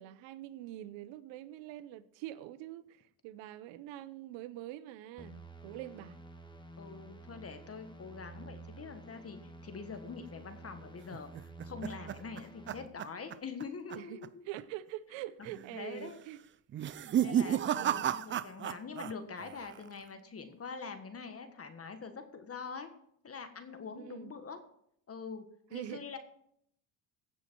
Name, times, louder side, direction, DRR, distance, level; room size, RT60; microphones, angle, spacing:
voice 1, 0.0-6.2 13.9-16.4 17.9-18.0 19.8-20.0 23.9-24.3 25.7-26.2, right 14 dB, 75° right, 0.8 m, -45 dB
sound 1, 5.2-12.9, right 2 dB, 10° left, 1.3 m, -51 dB
voice 2, 6.8-14.5 15.7-16.2 17.2-22.9 23.2-24.6 25.1-25.4 25.7-26.2, left 5 dB, 30° left, 1.5 m, -44 dB
sound 2, 11.1-13.6 13.9-14.3 14.6-14.7 15.4-15.8 16.7-19.1 19.4-20.0, right 10 dB, 30° right, 0.4 m, -33 dB
16.0 x 6.4 x 4.5 m
supercardioid pair, 95°, 45 cm